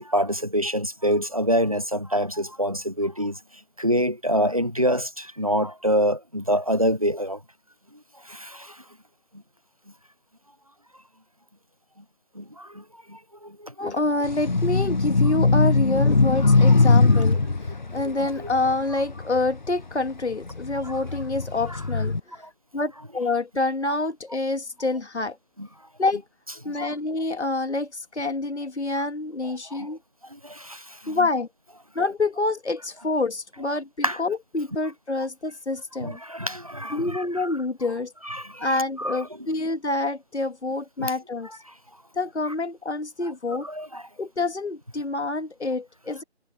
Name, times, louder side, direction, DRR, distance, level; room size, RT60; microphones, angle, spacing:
voice 1, 0.0-3.4 3.8-7.4 8.3-8.8 12.4-12.8 13.1-14.0 17.1-17.2 18.2-18.3 25.6-25.7 26.7-26.9 29.7-29.9 30.3-31.2 34.0-34.2 36.0-37.2 38.2-39.2 41.0-41.1 43.6-44.0, equal, 35° right, 0.5 m, -26 dB
voice 2, 13.8-22.2 22.7-25.4 26.0-26.2 26.6-30.0 31.1-31.5 32.0-36.2 36.9-38.1 38.6-41.5 42.2-43.7 44.2-46.2, left 2 dB, 85° left, 2.1 m, -27 dB
sound 1, 14.2-19.8 20.3-22.2, left 3 dB, 45° left, 0.7 m, -20 dB
figure-of-eight pair, 170°, 33 cm